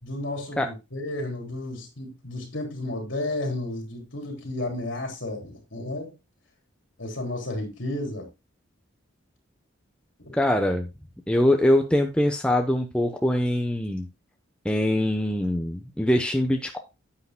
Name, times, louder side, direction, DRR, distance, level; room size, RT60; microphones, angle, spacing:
voice 1, 0.0-6.1 7.0-8.3 10.2-10.3, left 1 dB, 65° left, 3.7 m, -32 dB
voice 2, 10.4-10.9 11.3-14.1 14.6-16.8, left 1 dB, 5° left, 0.8 m, -23 dB
10.0 x 8.4 x 2.2 m
head